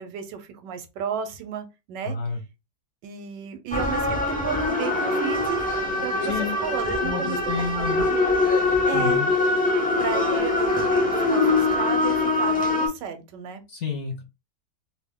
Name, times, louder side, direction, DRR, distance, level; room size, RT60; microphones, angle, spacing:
voice 1, 0.0-2.2 3.0-5.6 6.0-7.4 7.8-8.2 8.9-9.2 10.0-13.6, right 8 dB, 85° right, 1.3 m, -33 dB
voice 2, 2.0-2.4 6.3-6.6 7.0-8.0 8.9-9.3 13.7-14.2, left 6 dB, 50° left, 0.9 m, -29 dB
sound 1, 3.7-12.9, left 2 dB, 15° left, 0.3 m, -23 dB
2.7 x 2.6 x 3.5 m
omnidirectional pair, 1.9 m